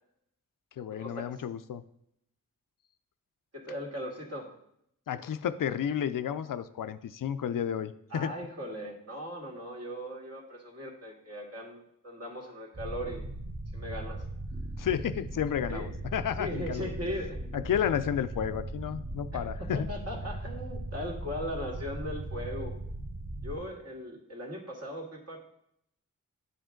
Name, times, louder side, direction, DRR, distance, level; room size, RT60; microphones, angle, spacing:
voice 1, 0.8-1.8 5.1-8.3 14.8-16.9 17.5-19.9, left 9 dB, 75° left, 12 dB, 0.5 m, -32 dB
voice 2, 3.5-4.6 8.1-13.3 13.7-14.2 15.7-15.9 16.4-17.4 17.8-17.9 19.7-22.7 23.4-25.4, equal, 45° right, -1 dB, 1.9 m, -38 dB
sound 1, 12.7-23.6, right 1 dB, 25° right, 0.8 m, -38 dB
9.9 x 5.1 x 3.7 m, 0.73 s
wide cardioid pair, 75°, 33 cm